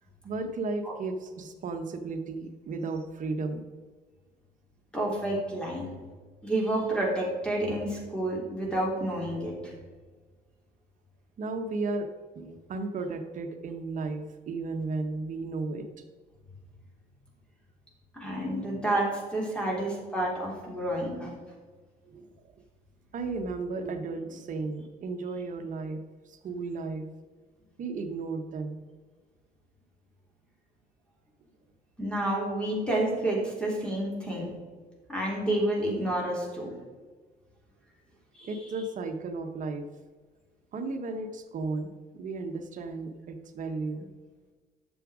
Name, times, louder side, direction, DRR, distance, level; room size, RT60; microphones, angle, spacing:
voice 1, 0.2-3.7 11.4-12.1 12.3-15.9 22.1-22.3 23.1-26.0 26.3-27.1 27.8-28.8 38.4-39.9 40.7-44.1, right 3 dB, 50° right, 7 dB, 1.2 m, -34 dB
voice 2, 4.9-5.9 6.4-9.7 18.1-21.3 32.0-34.6 35.1-36.7 38.3-38.6, right 1 dB, 5° left, -3 dB, 3.3 m, -29 dB
10.0 x 7.2 x 5.0 m, 1.4 s
cardioid pair, 110°, 17 cm